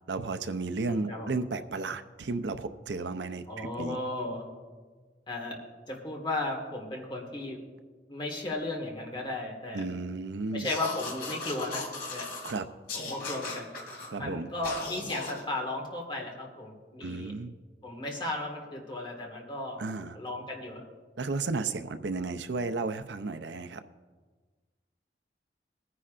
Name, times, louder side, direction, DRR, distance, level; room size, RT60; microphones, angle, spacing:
voice 1, 0.1-4.0 9.7-10.7 12.4-12.7 14.1-14.5 17.0-17.5 19.8-20.2 21.2-23.8, right 3 dB, 85° right, 10 dB, 0.6 m, -33 dB
voice 2, 0.9-1.3 3.5-4.4 5.3-5.6 5.9-7.6 8.1-9.8 10.5-12.3 12.9-13.7 14.2-17.3 17.8-19.8 20.1-20.8, left 2 dB, 30° left, 0 dB, 1.8 m, -35 dB
sound 1, 10.6-12.5 12.9-14.1 14.6-15.4, left 3 dB, 60° left, 2.8 m, -37 dB
20.5 x 9.9 x 2.5 m, 1.4 s
head